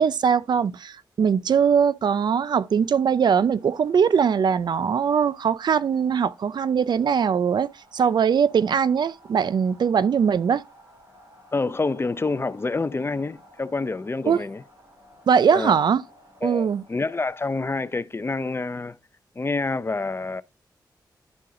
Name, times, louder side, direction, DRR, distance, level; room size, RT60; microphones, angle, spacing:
voice 1, 0.0-10.6 14.3-14.4 15.3-16.0 16.4-16.8, right 7 dB, 65° right, 0.4 m, -21 dB
sound 1, 2.3-17.3, equal, 50° right, 4.7 m, -54 dB
voice 2, 11.5-14.6 15.5-15.8 16.4-19.0 19.4-20.4, left 3 dB, 30° left, 0.6 m, -27 dB
11.0 x 3.8 x 3.7 m
cardioid pair, 60°, 8 cm